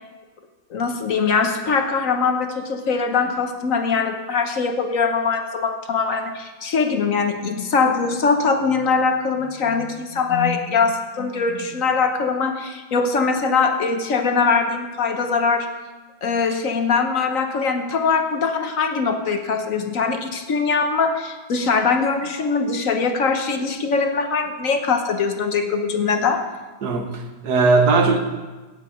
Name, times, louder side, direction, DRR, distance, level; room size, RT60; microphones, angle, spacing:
voice 1, 0.7-15.7 16.2-26.4, left 5 dB, 50° left, 6 dB, 1.2 m, -22 dB
voice 2, 26.8-28.2, right 3 dB, 55° right, 5 dB, 1.7 m, -18 dB
15.0 x 9.0 x 5.1 m, 1.2 s
omnidirectional pair, 2.1 m